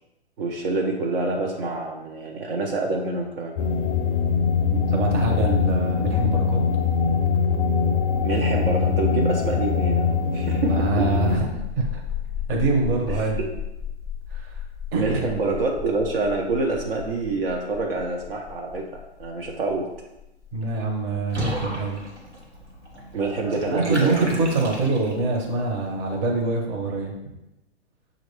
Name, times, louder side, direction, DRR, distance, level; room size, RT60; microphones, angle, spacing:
voice 1, 0.4-3.5 8.2-11.1 13.1-13.3 14.9-19.9 23.1-24.1, right 3 dB, 55° right, 0 dB, 0.7 m, -26 dB
sound 1, 3.6-11.4, left 6 dB, 50° left, 0.5 m, -22 dB
voice 2, 4.7-6.6 7.1-7.2 10.6-12.0 12.5-13.4 14.3-14.6 14.9-15.3 20.5-22.0 23.4-27.1, right 3 dB, 30° right, 1 dB, 0.9 m, -25 dB
sound 2, 10.5-23.9, left 8 dB, 10° right, 0.4 m, -35 dB
Water / Bathtub (filling or washing), 21.3-25.4, equal, 90° right, 1.2 m, -35 dB
6.2 x 2.5 x 3.2 m, 0.92 s
figure-of-eight pair, 115°, 33 cm